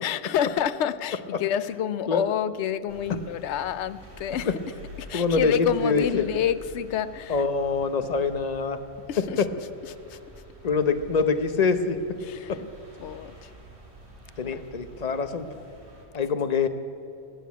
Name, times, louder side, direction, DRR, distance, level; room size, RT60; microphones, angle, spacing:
voice 1, 0.0-4.6 5.0-7.5 9.1-9.4 9.9-10.2 12.2-12.7 13.0-13.5 14.4-14.6, left 9 dB, 85° left, 14 dB, 0.9 m, -28 dB
sound 1, 2.9-16.0, equal, 75° right, 2.9 m, -47 dB
voice 2, 5.1-5.5 5.8-6.2 7.3-8.8 9.4-9.5 10.6-12.0 12.5-12.6 14.4-15.5 16.1-16.7, left 5 dB, 40° left, 9 dB, 0.9 m, -24 dB
19.5 x 8.5 x 8.3 m, 2.7 s
omnidirectional pair, 1.1 m